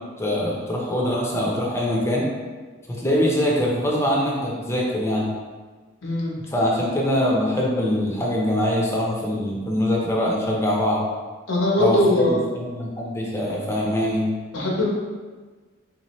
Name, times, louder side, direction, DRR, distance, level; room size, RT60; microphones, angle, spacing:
voice 1, 0.2-2.3 2.9-5.3 6.5-11.0 11.8-14.3, equal, 15° left, -3 dB, 0.6 m, -23 dB
voice 2, 6.0-6.3 11.5-12.4 14.5-14.9, left 1 dB, 80° left, -4 dB, 1.0 m, -20 dB
3.8 x 2.7 x 3.0 m, 1.4 s
head